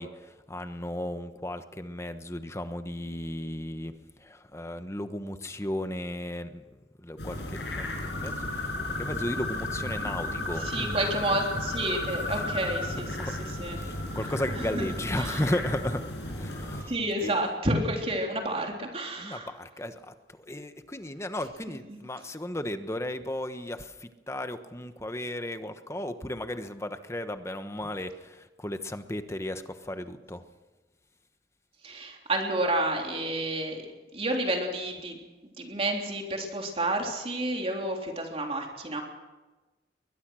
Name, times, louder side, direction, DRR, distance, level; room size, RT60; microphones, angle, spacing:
voice 1, 0.0-11.0 11.3-11.4 11.9-12.0 12.3-12.5 13.0-13.3 13.6-16.9 17.2-17.4 19.2-30.4, left 1 dB, 15° left, 9 dB, 1.1 m, -35 dB
sound 1, 7.2-16.8, left 2 dB, 75° left, 6.0 m, -34 dB
voice 2, 10.6-13.1 13.6-13.8 14.7-14.9 15.2-15.4 16.8-19.5 31.8-33.8 34.1-39.0, right 1 dB, 35° right, 1 dB, 3.5 m, -30 dB
22.0 x 20.5 x 6.3 m, 1.2 s
head